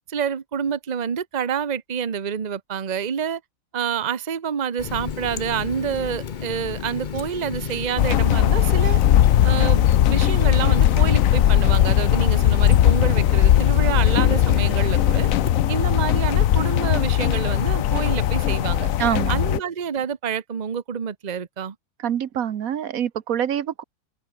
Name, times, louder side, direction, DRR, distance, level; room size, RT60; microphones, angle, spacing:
voice 1, 0.1-3.4 3.7-9.0 9.4-9.8 10.1-15.3 15.7-18.9 19.3-21.7, right 7 dB, 35° right, 1.0 m, -28 dB
Water tap faucet, 4.8-15.5, left 7 dB, 45° left, 0.7 m, -32 dB
sound 1, 8.0-19.6, left 11 dB, 70° left, 1.1 m, -18 dB
voice 2, 19.0-19.6 22.0-23.8, right 9 dB, 70° right, 1.4 m, -25 dB
open air
omnidirectional pair, 1.5 m